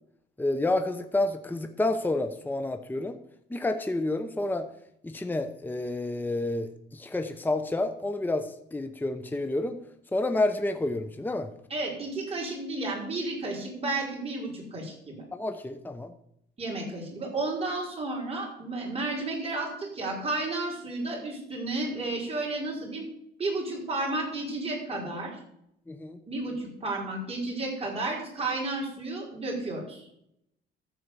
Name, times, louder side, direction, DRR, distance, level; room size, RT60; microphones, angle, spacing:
voice 1, 0.4-3.2 3.5-4.7 5.0-9.8 10.1-11.5 15.3-16.1 25.9-26.2, left 2 dB, 10° left, 8 dB, 0.8 m, -29 dB
voice 2, 11.7-15.2 16.6-23.0 23.4-25.4 26.3-30.1, right 2 dB, 30° right, -2 dB, 4.9 m, -32 dB
14.0 x 4.6 x 6.9 m, 0.76 s
cardioid pair, 90°, 20 cm